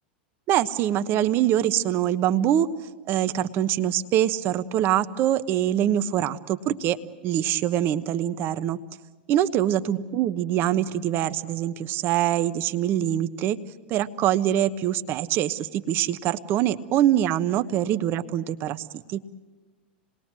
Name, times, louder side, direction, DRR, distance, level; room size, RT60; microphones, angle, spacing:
voice 1, 0.5-2.7 3.1-7.0 7.2-8.8 9.3-13.6 13.9-19.2, right 11 dB, 45° right, 11 dB, 1.1 m, -24 dB
27.5 x 20.5 x 7.5 m, 1.3 s
hypercardioid pair, 100°, 5 cm